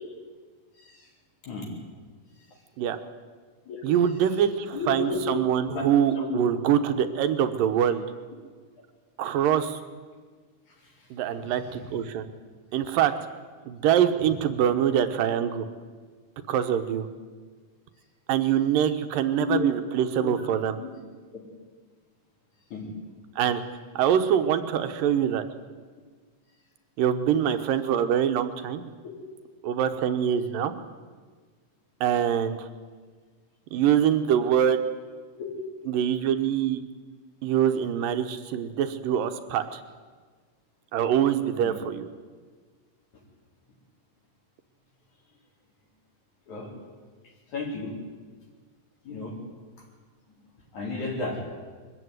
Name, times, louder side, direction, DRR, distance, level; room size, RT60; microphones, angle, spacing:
voice 1, 3.8-8.0 9.2-9.8 11.1-12.3 12.7-13.1 13.7-15.7 16.5-17.1 18.3-20.8 23.4-23.6 23.9-25.5 27.0-28.8 29.6-30.7 32.0-32.7 33.7-34.8 35.9-36.8 37.4-39.8 40.9-42.1, right 9 dB, 80° right, 9 dB, 2.8 m, -24 dB
voice 2, 4.7-5.2 5.7-5.9 6.2-6.4 11.4-11.5 19.4-19.7 20.0-20.3 20.8-20.9 22.7-22.9 41.6-41.7 46.5-46.7 47.5-47.9 49.0-49.4 50.7-51.4, left 4 dB, 55° left, -1 dB, 5.5 m, -32 dB
22.5 x 14.5 x 9.5 m, 1.5 s
omnidirectional pair, 3.9 m